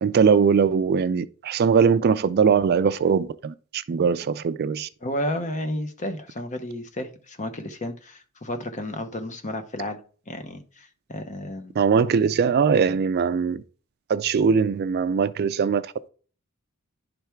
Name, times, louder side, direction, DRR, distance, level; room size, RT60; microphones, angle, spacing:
voice 1, 0.0-4.9 11.8-13.6 14.1-16.1, right 6 dB, 45° right, 0.3 m, -21 dB
voice 2, 5.0-10.0 10.3-11.7, left 1 dB, 35° left, 0.8 m, -32 dB
10.5 x 3.5 x 4.4 m
head